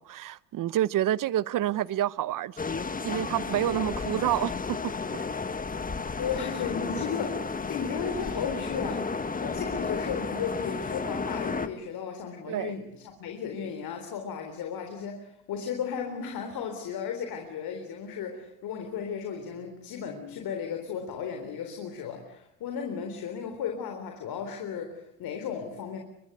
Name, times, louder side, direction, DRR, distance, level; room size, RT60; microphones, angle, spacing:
voice 1, 0.0-2.6 3.0-4.8 5.1-5.2 12.5-12.7, right 12 dB, 55° right, 1.0 m, -28 dB
sound 1, 2.6-11.7, left 4 dB, 20° left, 1.5 m, -32 dB
voice 2, 6.2-9.1 9.4-26.0, left 7 dB, 65° left, 3.9 m, -35 dB
24.0 x 22.5 x 8.2 m
supercardioid pair, 85°, 38 cm